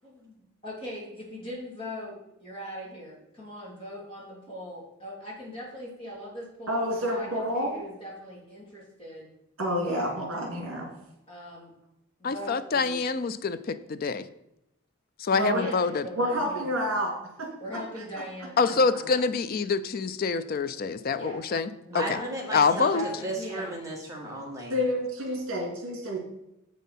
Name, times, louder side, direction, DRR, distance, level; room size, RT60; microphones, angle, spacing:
voice 1, 0.0-9.3 9.8-10.3 11.3-11.7 12.2-13.0 15.4-16.6 17.6-19.1 21.1-21.4 21.7-22.2 22.7-23.8, equal, 25° left, -5 dB, 3.0 m, -40 dB
voice 2, 6.7-7.7 9.6-10.9 15.3-15.6 16.2-17.5 21.9-22.2 24.7-26.2, equal, 65° right, 1 dB, 2.3 m, -29 dB
voice 3, 12.2-14.3 15.2-16.1 18.6-21.7 21.9-22.2 22.5-23.1, left 5 dB, 40° left, 13 dB, 0.4 m, -26 dB
voice 4, 21.9-22.9 23.2-24.7, right 1 dB, 15° right, -2 dB, 1.5 m, -34 dB
7.3 x 5.4 x 5.7 m, 0.84 s
head